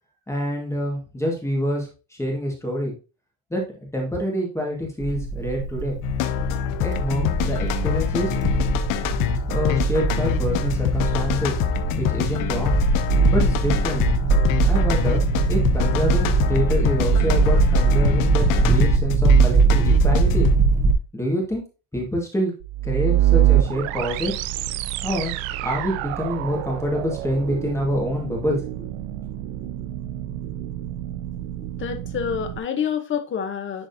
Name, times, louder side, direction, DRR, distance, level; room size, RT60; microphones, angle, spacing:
voice 1, 0.3-2.9 3.5-3.6 3.9-6.0 6.8-8.3 9.5-11.6 11.9-12.8 13.3-14.1 14.6-15.2 15.5-20.5 21.1-21.6 21.9-22.5 22.8-24.4 25.0-25.3 25.6-28.9, equal, 5° left, 1.6 m, -26 dB
sound 1, 5.0-20.9, right 4 dB, 20° right, 0.3 m, -21 dB
sound 2, 6.0-20.6, left 11 dB, 45° left, 0.6 m, -25 dB
sound 3, 22.6-32.6, right 13 dB, 80° right, 0.6 m, -26 dB
voice 2, 31.7-33.9, left 7 dB, 25° left, 0.9 m, -27 dB
10.5 x 3.9 x 2.7 m
cardioid pair, 155°, 47 cm